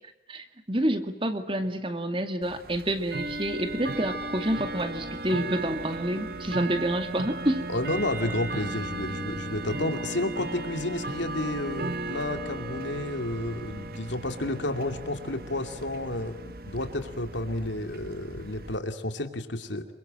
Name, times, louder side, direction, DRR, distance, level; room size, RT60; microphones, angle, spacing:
voice 1, 0.3-7.6, right 1 dB, 30° right, 8 dB, 2.3 m, -28 dB
Bell / Tick-tock, 2.4-18.8, right 2 dB, 50° right, 1.3 m, -36 dB
voice 2, 7.7-19.9, left 1 dB, 75° left, 7 dB, 2.7 m, -31 dB
27.0 x 23.5 x 7.7 m, 0.98 s
head